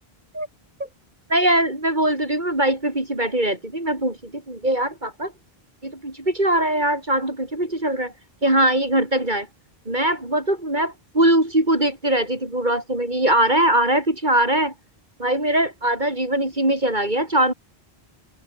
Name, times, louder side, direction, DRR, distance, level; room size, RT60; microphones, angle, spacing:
voice 1, 1.3-5.3 5.8-8.1 8.4-9.5 9.9-14.7 15.2-17.5, right 1 dB, 45° right, 5.1 m, -21 dB
omnidirectional pair, 1.1 m